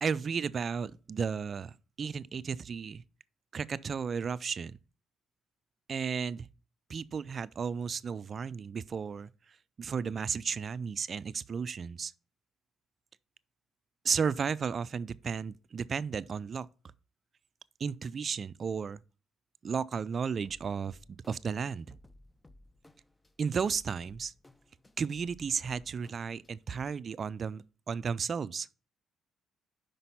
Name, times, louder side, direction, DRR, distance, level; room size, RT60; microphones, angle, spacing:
voice 1, 0.0-3.0 3.5-4.8 5.9-6.5 6.9-9.3 9.8-12.1 14.0-16.7 17.8-19.0 19.6-21.9 23.4-24.3 25.0-28.7, right 6 dB, 45° right, 0.4 m, -34 dB
sound 1, 20.4-26.8, left 1 dB, 15° left, 0.6 m, -59 dB
5.7 x 5.2 x 5.5 m
supercardioid pair, 70°, 0 cm